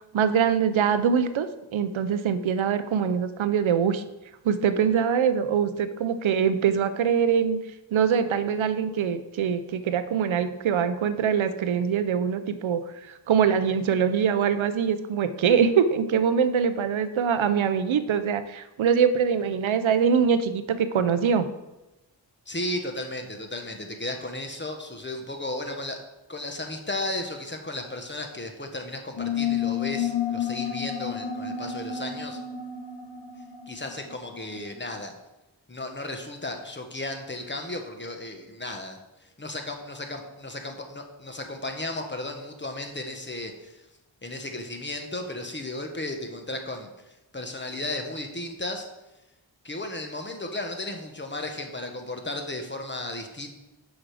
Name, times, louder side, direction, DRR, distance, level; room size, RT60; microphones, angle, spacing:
voice 1, 0.1-1.5 1.7-4.0 4.4-7.6 7.9-12.8 13.1-21.5, right 7 dB, 85° right, 11 dB, 0.6 m, -23 dB
voice 2, 22.5-26.0 26.3-32.4 33.7-35.1 35.7-39.0 39.4-43.8 44.2-48.9 49.6-53.5, left 2 dB, 25° left, 4 dB, 1.2 m, -34 dB
sound 1, 29.2-34.4, left 8 dB, 60° left, 1.0 m, -30 dB
6.2 x 6.0 x 4.9 m, 1.0 s
cardioid pair, 50°, 46 cm